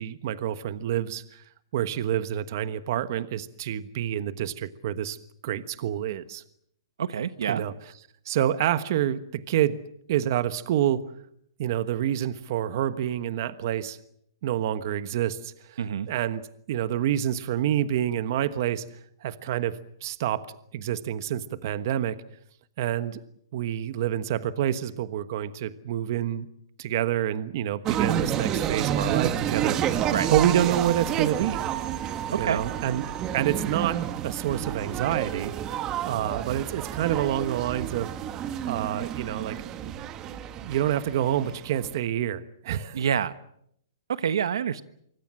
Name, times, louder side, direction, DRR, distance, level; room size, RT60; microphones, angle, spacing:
voice 1, 0.0-1.4 1.7-5.2 5.4-6.4 7.5-7.7 8.2-9.8 10.1-11.1 11.6-14.0 14.4-15.8 16.1-18.9 19.2-20.5 20.7-22.2 22.8-23.2 23.5-26.5 26.8-31.6 32.4-33.0 33.3-35.5 36.0-38.1 38.7-39.6 39.8-43.0, right 11 dB, 45° right, 13 dB, 1.3 m, -28 dB
voice 2, 7.0-7.6 15.8-16.1 30.1-30.3 32.3-32.6 42.9-43.4 44.1-44.8, right 8 dB, 75° right, 13 dB, 1.3 m, -27 dB
sound 1, 27.9-41.9, right 10 dB, 20° right, 1.3 m, -30 dB
25.5 x 24.0 x 7.6 m, 0.72 s
hypercardioid pair, 160°, 2 cm